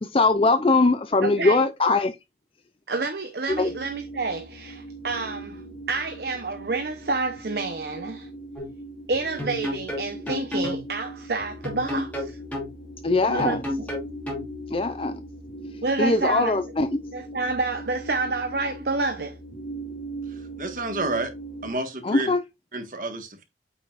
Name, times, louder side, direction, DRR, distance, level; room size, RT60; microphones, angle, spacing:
voice 1, 0.0-2.1 3.6-3.7 13.0-13.6 14.7-15.2 16.0-16.9 22.0-22.4, left 3 dB, 30° left, 0.4 m, -21 dB
voice 2, 1.2-1.6 2.9-5.6 5.9-8.3 9.1-12.4 13.3-13.6 15.8-16.6 17.1-19.4, right 3 dB, 65° right, 0.9 m, -28 dB
sound 1, 3.5-21.7, right 1 dB, 75° left, 2.2 m, -40 dB
sound 2, 8.6-8.7 9.4-10.8 11.6-12.7 13.4-14.5, left 1 dB, 10° left, 2.5 m, -30 dB
voice 3, 20.3-21.3 21.6-22.3 22.7-23.4, right 2 dB, 50° right, 1.6 m, -30 dB
8.3 x 5.8 x 2.5 m
head